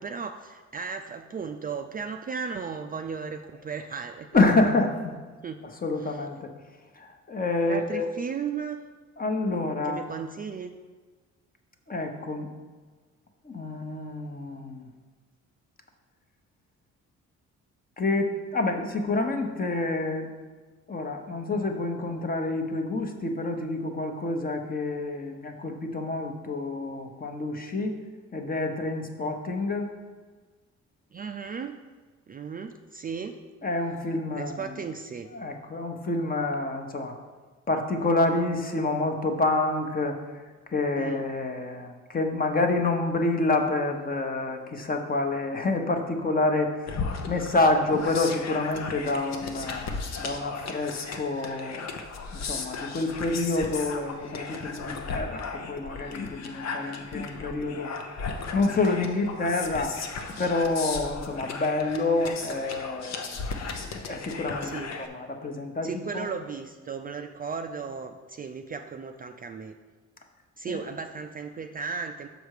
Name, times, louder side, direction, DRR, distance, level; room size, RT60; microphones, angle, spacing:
voice 1, 0.0-4.3 5.4-5.6 6.0-6.2 7.7-8.8 9.8-10.7 31.1-31.8 32.3-33.4 34.4-35.3 41.0-41.3 64.6-65.0 65.8-69.8 70.6-72.3, right 6 dB, 30° right, 6 dB, 0.4 m, -35 dB
voice 2, 4.3-5.1 5.8-6.5 7.0-8.1 9.2-10.0 11.9-12.5 13.4-14.8 18.0-20.3 20.9-28.0 28.3-29.9 33.6-34.7 35.3-37.1 37.7-40.2 40.7-51.9 52.3-57.9 58.5-60.0 60.4-63.4 64.0-64.7 65.0-65.9 66.1-66.3 70.7-70.8, left 2 dB, 30° left, 4 dB, 0.9 m, -28 dB
sound 1, 46.9-65.1, left 4 dB, 60° left, 0.8 m, -36 dB
6.6 x 5.1 x 4.8 m, 1.4 s
cardioid pair, 90°, 30 cm